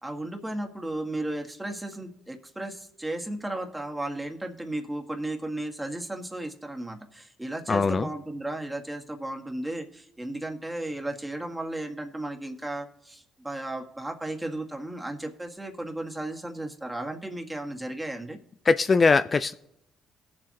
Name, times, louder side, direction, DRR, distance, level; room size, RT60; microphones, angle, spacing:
voice 1, 0.0-18.4, right 1 dB, 10° right, 2 dB, 1.7 m, -34 dB
voice 2, 7.7-8.1 18.7-19.5, left 4 dB, 35° left, 12 dB, 0.4 m, -21 dB
18.0 x 7.5 x 2.9 m, 0.81 s
supercardioid pair, 65°, 0 cm